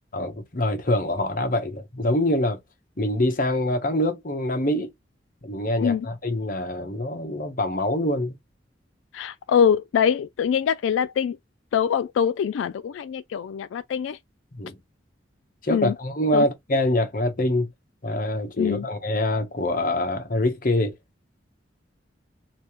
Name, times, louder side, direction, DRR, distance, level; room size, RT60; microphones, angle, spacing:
voice 1, 0.1-2.6 3.0-4.9 5.4-8.3 14.5-14.8 15.6-17.7 18.0-20.9, left 1 dB, 45° left, 1.0 m, -25 dB
voice 2, 9.1-11.4 11.7-14.2 15.7-15.9 16.3-16.5 18.6-18.8, left 7 dB, 90° left, 0.3 m, -23 dB
3.3 x 3.3 x 2.9 m
head